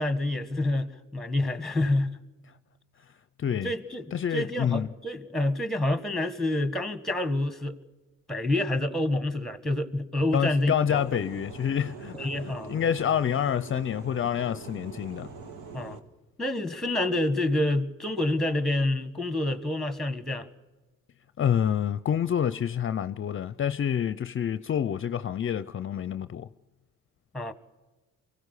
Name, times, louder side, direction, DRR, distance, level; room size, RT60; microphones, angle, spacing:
voice 1, 0.0-2.2 3.6-7.8 8.3-11.0 12.1-12.8 15.7-16.0 16.4-20.5 27.3-27.5, left 1 dB, ahead, 1.7 m, -28 dB
voice 2, 3.4-3.7 4.1-4.9 10.3-15.3 21.4-26.5, left 9 dB, 45° left, 0.6 m, -28 dB
sound 1, 10.9-16.0, right 4 dB, 80° right, 1.9 m, -43 dB
24.0 x 16.5 x 8.3 m
cardioid pair, 90°, 30 cm